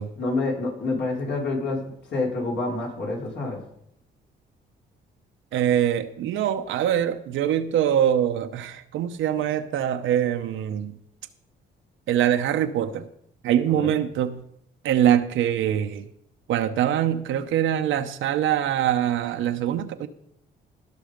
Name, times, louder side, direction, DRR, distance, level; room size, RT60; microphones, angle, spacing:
voice 1, 0.2-1.8 2.1-3.6 13.7-13.9, left 3 dB, 65° left, 4.4 m, -27 dB
voice 2, 5.5-11.0 12.1-13.1 13.4-14.4 14.8-16.1 16.5-20.1, right 10 dB, 80° right, 0.8 m, -23 dB
17.5 x 6.3 x 5.1 m
cardioid pair, 90°, 20 cm